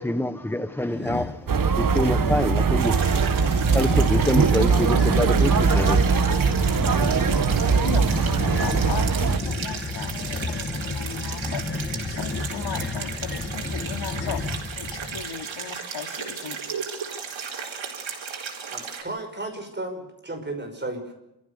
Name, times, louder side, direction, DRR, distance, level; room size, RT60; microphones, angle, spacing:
voice 1, 0.0-6.4, left 1 dB, 5° left, 11 dB, 0.8 m, -27 dB
sound 1, 0.9-1.4 2.0-2.7 3.3-15.3, left 3 dB, 25° left, 1.4 m, -32 dB
sound 2, 1.5-9.4, right 5 dB, 45° right, 1.4 m, -21 dB
sound 3, 2.8-19.0, right 6 dB, 85° right, 4.3 m, -35 dB
voice 2, 7.1-14.5 14.7-16.6, left 7 dB, 75° left, 6 dB, 2.7 m, -37 dB
voice 3, 18.6-21.1, right 2 dB, 25° right, 4 dB, 5.6 m, -34 dB
30.0 x 14.5 x 6.7 m, 0.92 s
wide cardioid pair, 120°, 45 cm